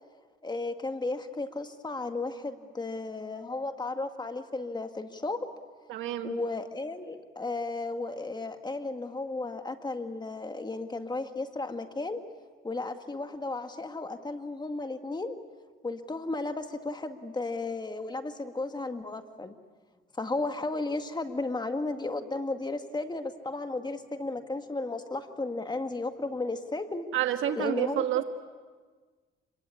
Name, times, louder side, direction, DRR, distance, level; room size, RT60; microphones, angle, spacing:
voice 1, 0.4-5.5 6.2-12.2 12.6-15.4 15.8-19.5 20.2-27.1 27.6-28.2, left 2 dB, 20° left, 7 dB, 2.0 m, -34 dB
voice 2, 5.9-6.4 27.1-28.2, right 11 dB, 85° right, 6 dB, 1.5 m, -29 dB
26.5 x 23.0 x 8.5 m, 1.4 s
cardioid pair, 90°, 20 cm